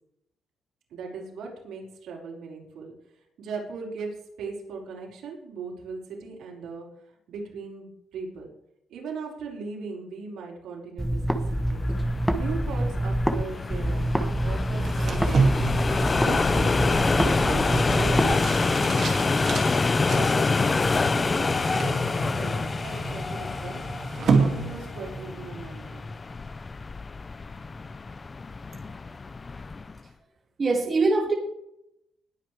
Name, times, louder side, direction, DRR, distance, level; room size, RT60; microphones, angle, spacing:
voice 1, 0.9-2.9 3.4-6.9 7.3-8.5 8.9-11.2 11.5-11.8 12.4-15.8 16.2-16.8 17.4-19.6 20.1-23.8 24.2-26.1, right 4 dB, 85° right, -2 dB, 5.2 m, -39 dB
sound 1, 11.0-13.4 13.7-18.3, right 1 dB, ahead, 1.0 m, -26 dB
sound 2, 11.7-30.0, left 4 dB, 20° left, 0.4 m, -27 dB
sound 3, 14.7-25.3, right 4 dB, 45° right, 2.4 m, -30 dB
voice 2, 30.6-31.3, right 3 dB, 25° right, 0 dB, 2.1 m, -22 dB
20.5 x 9.1 x 3.4 m, 0.77 s
cardioid pair, 160°, 0 cm